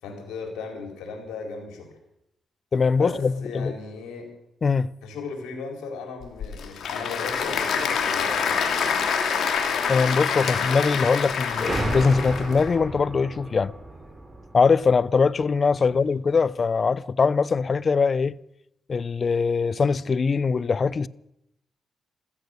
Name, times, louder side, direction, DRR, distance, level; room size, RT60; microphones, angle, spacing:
voice 1, 0.0-1.9 2.9-4.3 5.0-9.0 15.8-16.0, left 4 dB, 90° left, 4.5 m, -36 dB
voice 2, 2.7-3.7 4.6-4.9 9.9-13.7 14.5-18.4 18.9-21.1, left 5 dB, 45° left, 0.5 m, -22 dB
Applause / Crowd, 6.2-12.7, left 6 dB, 75° left, 2.6 m, -26 dB
sound 1, 11.6-16.0, right 2 dB, 25° right, 2.8 m, -34 dB
14.5 x 14.5 x 6.7 m
cardioid pair, 70°, 0 cm